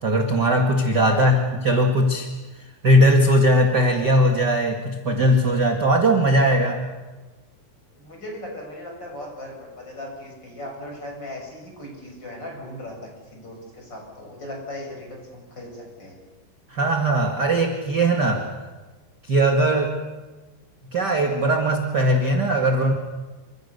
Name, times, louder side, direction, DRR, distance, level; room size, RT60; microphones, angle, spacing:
voice 1, 0.0-2.3 2.8-6.8 16.7-18.5 19.3-20.0 20.9-22.9, right 1 dB, 35° right, 3 dB, 1.8 m, -19 dB
voice 2, 0.9-1.4 7.9-16.2, left 1 dB, 25° left, 1 dB, 7.4 m, -37 dB
29.0 x 26.0 x 6.8 m, 1.2 s
omnidirectional pair, 4.4 m